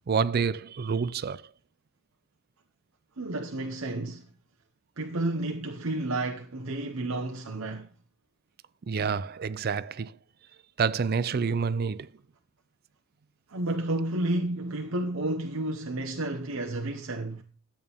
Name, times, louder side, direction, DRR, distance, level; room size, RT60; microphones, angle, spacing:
voice 1, 0.1-1.5 8.9-10.2 10.8-12.1, right 5 dB, 45° right, 0.4 m, -28 dB
voice 2, 3.2-4.3 5.0-7.9 13.5-17.4, right 2 dB, 75° right, 1.0 m, -31 dB
12.5 x 8.7 x 3.6 m
head